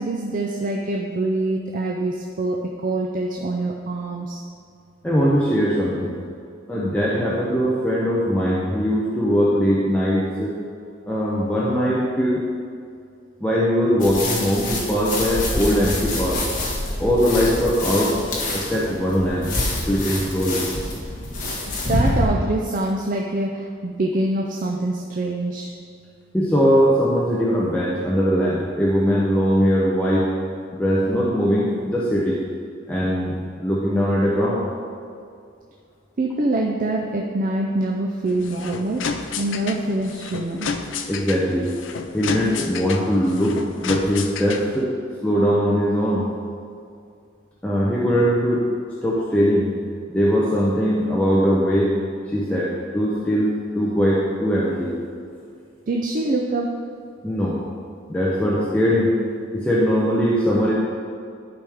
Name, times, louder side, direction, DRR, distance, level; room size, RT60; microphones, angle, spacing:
voice 1, 0.0-4.4 21.9-25.7 36.2-40.7 55.9-56.7, right 2 dB, 40° right, 1 dB, 0.5 m, -25 dB
voice 2, 5.0-6.2 6.7-10.6 11.1-12.4 13.4-16.4 17.0-18.2 18.5-19.5 19.9-20.6 26.3-30.3 30.7-32.4 32.9-34.7 41.1-41.7 42.1-44.9 45.2-46.3 47.6-48.6 49.0-49.7 50.1-51.9 52.3-54.9 57.2-57.6 58.1-59.1 59.5-60.7, equal, 5° left, -6 dB, 0.7 m, -20 dB
sound 1, 14.0-22.3, left 1 dB, 40° left, 1.4 m, -26 dB
sound 2, 38.3-44.8, left 5 dB, 70° left, 0.5 m, -31 dB
11.5 x 5.1 x 3.5 m, 2.4 s
head